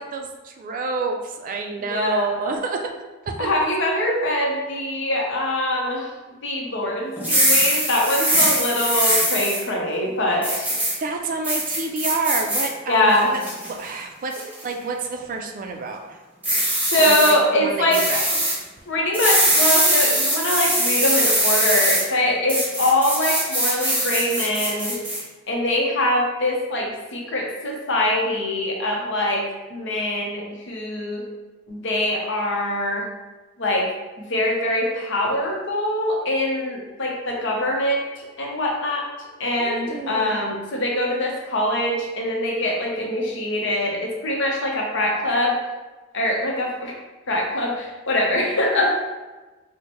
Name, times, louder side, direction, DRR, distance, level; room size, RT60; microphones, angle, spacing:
voice 1, 0.0-2.9 3.4-3.5 11.0-13.4 13.7-14.3 14.6-16.2 17.0-18.3 39.6-40.4, right 3 dB, 45° right, 4 dB, 0.4 m, -28 dB
voice 2, 1.8-2.5 3.4-6.1 6.4-10.7 12.9-13.3 16.9-18.4 18.9-25.0 25.5-31.2 31.7-33.0 33.6-33.9 34.2-39.0 39.4-45.6 46.1-46.9 47.3-49.0, left 1 dB, 65° left, -1 dB, 0.8 m, -23 dB
sound 1, 7.2-9.6 10.4-10.9 11.4-12.7 13.1-13.7 14.3-14.6 16.4-17.3 17.9-18.5 19.1-22.0 22.5-25.2, right 1 dB, 10° right, 0.9 m, -21 dB
4.4 x 2.1 x 3.0 m, 1.2 s
head